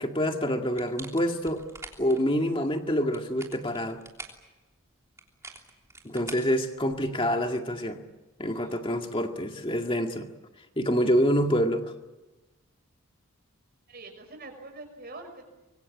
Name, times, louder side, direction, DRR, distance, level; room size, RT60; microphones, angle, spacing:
voice 1, 0.0-1.6 2.0-4.0 6.0-8.0 8.4-10.3 10.8-11.9, equal, 25° left, 4 dB, 2.1 m, -26 dB
sound 1, 0.8-2.2 3.0-4.5 5.2-7.2, right 3 dB, 15° right, 3.2 m, -45 dB
voice 2, 13.9-15.4, right 2 dB, 45° right, 5 dB, 6.1 m, -45 dB
25.0 x 23.5 x 8.5 m, 1.1 s
head